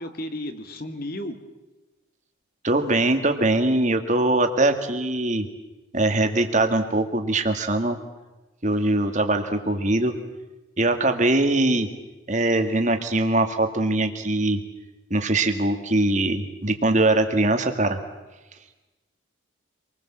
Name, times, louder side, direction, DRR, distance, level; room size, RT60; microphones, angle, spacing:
voice 1, 0.0-1.4, left 1 dB, 45° left, 8 dB, 2.2 m, -33 dB
voice 2, 2.6-5.5 5.9-8.0 8.6-10.2 10.8-11.9 12.3-14.6 15.1-18.0, right 2 dB, 35° right, 6 dB, 2.0 m, -22 dB
26.5 x 20.5 x 7.5 m, 1.1 s
head